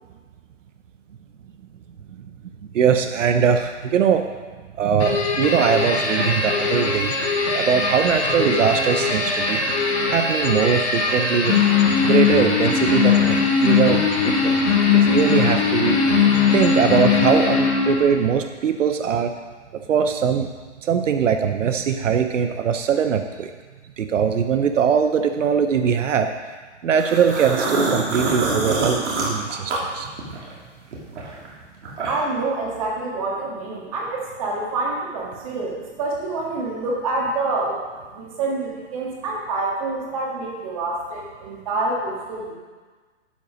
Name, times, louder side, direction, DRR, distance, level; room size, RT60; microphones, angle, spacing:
voice 1, 2.7-4.3 4.8-7.1 7.5-9.6 10.1-11.6 12.0-14.6 14.9-16.0 16.5-19.3 19.9-20.5 20.8-23.5 24.0-26.3 26.8-30.1, right 7 dB, 80° right, 7 dB, 0.8 m, -21 dB
sound 1, 5.0-18.2, left 5 dB, 55° left, 2.8 m, -20 dB
sound 2, 27.0-30.5 30.9-32.4, right 2 dB, 65° right, 3.0 m, -25 dB
voice 2, 32.1-37.8 38.1-42.6, right 3 dB, 30° right, -3 dB, 1.8 m, -27 dB
11.0 x 5.5 x 5.1 m, 1.4 s
hypercardioid pair, 175°, 37 cm